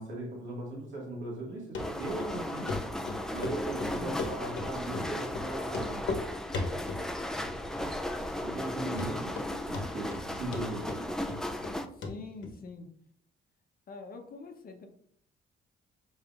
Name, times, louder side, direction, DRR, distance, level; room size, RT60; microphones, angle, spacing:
voice 1, 0.0-2.7 3.3-6.1 7.8-9.4 9.7-10.9, right 2 dB, 75° right, -3 dB, 2.0 m, -38 dB
Run, 1.7-1.9 2.2-2.3 2.7-2.8 3.1-4.7 4.9-5.1 5.3-5.4 5.7-6.2 6.5-7.0 7.4-7.8 8.1-8.2 8.6-8.7 9.0-9.5 9.7-10.2 10.5-11.7 12.0-12.1 12.4-12.5, left 3 dB, 70° left, 1.0 m, -35 dB
sound 1, 1.8-11.9, left 1 dB, 5° left, 0.4 m, -36 dB
voice 2, 11.9-12.9 13.9-14.9, left 4 dB, 45° left, 4 dB, 0.8 m, -44 dB
5.2 x 4.0 x 2.5 m, 0.66 s
cardioid pair, 90°, 20 cm